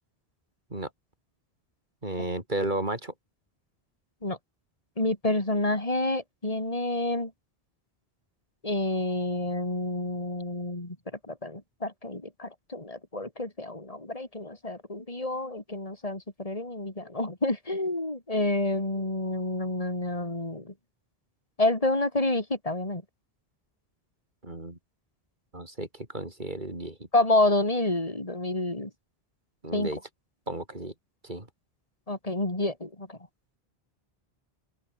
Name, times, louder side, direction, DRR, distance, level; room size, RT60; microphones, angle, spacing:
voice 1, 2.0-3.1 24.4-24.8 25.5-27.1 29.6-30.0 30.5-30.9 31.2-31.5, right 1 dB, 50° right, 5.1 m, -33 dB
voice 2, 5.0-7.3 8.6-11.0 11.3-20.7 21.6-23.0 27.1-28.9 29.7-29.9 32.1-33.2, left 2 dB, 35° left, 4.0 m, -28 dB
open air
omnidirectional pair, 1.1 m